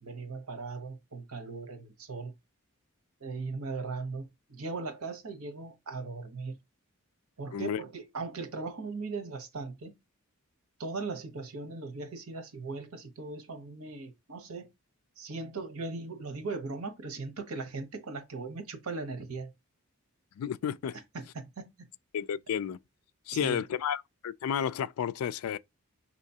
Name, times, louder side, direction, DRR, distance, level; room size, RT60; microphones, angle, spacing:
voice 1, 0.0-2.3 3.2-6.6 7.4-9.9 10.8-14.7 15.2-19.5 21.1-21.7 23.3-23.7, right 3 dB, 85° right, 0.9 m, -38 dB
voice 2, 20.4-21.0 22.1-22.8 23.3-25.6, left 8 dB, 85° left, 0.3 m, -32 dB
4.9 x 2.9 x 2.7 m
head